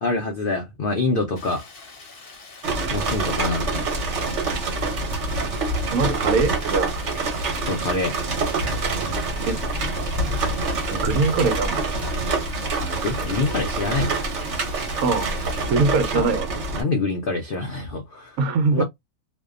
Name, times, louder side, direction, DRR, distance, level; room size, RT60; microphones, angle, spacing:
voice 1, 0.0-1.7 2.9-3.7 7.6-8.2 13.0-14.2 16.1-16.3 16.7-18.4 18.7-18.8, left 3 dB, 80° left, 0.5 m, -25 dB
Stream, 1.4-15.7, left 4 dB, 50° left, 0.8 m, -44 dB
sound 1, 2.6-16.8, right 2 dB, 55° right, 1.1 m, -26 dB
voice 2, 5.9-6.9 9.4-9.6 10.9-11.8 15.0-16.5 18.4-18.8, right 4 dB, 75° right, 1.0 m, -22 dB
2.6 x 2.1 x 2.3 m
omnidirectional pair, 1.6 m